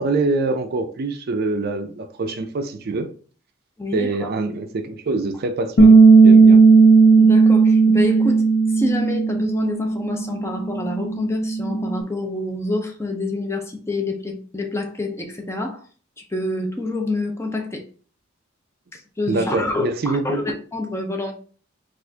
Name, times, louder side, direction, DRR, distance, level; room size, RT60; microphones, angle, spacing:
voice 1, 0.0-3.1 3.9-6.6 19.3-20.4, right 3 dB, 50° right, 0.4 m, -25 dB
voice 2, 3.8-4.3 7.2-8.4 8.7-15.8 16.3-17.8 18.9-21.3, left 2 dB, 15° left, 0.6 m, -27 dB
Bass guitar, 5.8-12.0, right 4 dB, 85° left, 0.7 m, -14 dB
4.2 x 2.5 x 2.8 m
head